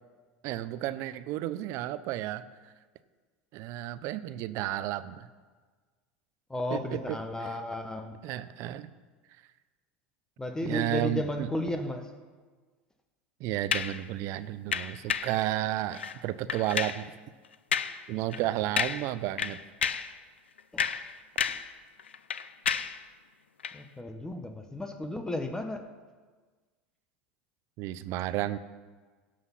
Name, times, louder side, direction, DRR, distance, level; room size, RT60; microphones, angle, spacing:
voice 1, 0.4-2.7 3.5-5.3 6.7-7.6 8.2-8.9 10.6-11.5 13.4-17.1 18.1-19.6 27.8-28.6, right 14 dB, 55° right, 15 dB, 0.6 m, -32 dB
voice 2, 6.5-8.2 10.4-12.1 20.7-20.9 23.7-25.8, left 1 dB, 10° left, 6 dB, 1.0 m, -34 dB
sound 1, 13.7-14.0 14.7-15.4 15.9-16.2 16.5-17.0 17.7-18.0 18.3-18.5 18.8-19.1 19.4-20.1 20.6-21.7 22.0-23.0 23.6-23.8, left 7 dB, 90° left, 0.5 m, -31 dB
17.0 x 6.0 x 5.7 m, 1.4 s
hypercardioid pair, 85°, 6 cm